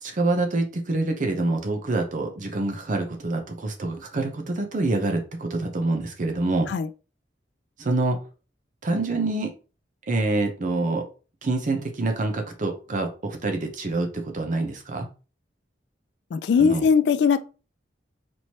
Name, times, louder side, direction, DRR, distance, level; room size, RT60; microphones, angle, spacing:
voice 1, 0.0-6.7 7.8-8.2 8.8-9.5 10.0-11.0 11.4-15.1 16.6-16.9, right 2 dB, 45° right, 0.6 m, -26 dB
voice 2, 16.3-17.4, left 6 dB, 65° left, 0.3 m, -20 dB
4.4 x 3.0 x 2.8 m
head